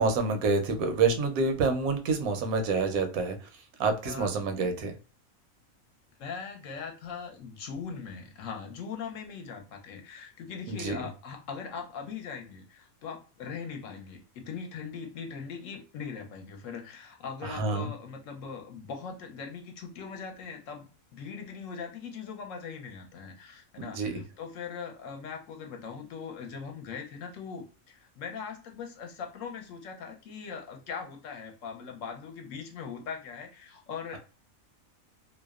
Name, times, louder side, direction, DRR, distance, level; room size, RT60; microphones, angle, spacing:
voice 1, 0.0-3.4 3.8-4.9 10.7-11.0 17.4-17.9 23.8-24.1, right 4 dB, 85° right, 1.1 m, -27 dB
voice 2, 4.0-4.8 6.2-34.2, left 6 dB, 70° left, 0.9 m, -40 dB
2.7 x 2.0 x 2.3 m
omnidirectional pair, 1.5 m